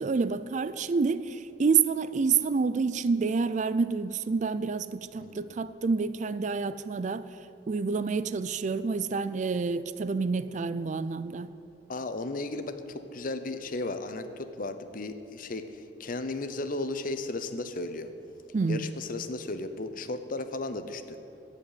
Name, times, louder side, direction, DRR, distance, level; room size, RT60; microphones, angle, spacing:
voice 1, 0.0-7.3 7.7-11.5 18.5-18.8, right 5 dB, 45° right, 0.4 m, -28 dB
voice 2, 5.2-5.6 11.9-18.1 18.7-21.2, left 2 dB, 50° left, 0.7 m, -35 dB
15.5 x 5.2 x 9.4 m
head